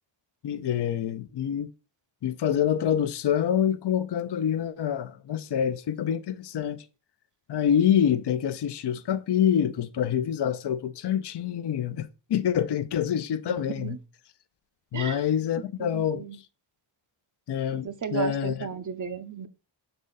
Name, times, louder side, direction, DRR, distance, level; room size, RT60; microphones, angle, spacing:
voice 1, 0.4-1.7 2.2-6.8 7.5-14.0 14.9-16.2 17.5-18.7, left 9 dB, 60° left, 0.5 m, -26 dB
voice 2, 13.5-14.0 14.9-15.2 15.8-16.4 17.7-19.5, right 7 dB, 40° right, 0.5 m, -34 dB
6.3 x 3.9 x 3.9 m
wide cardioid pair, 90°, 48 cm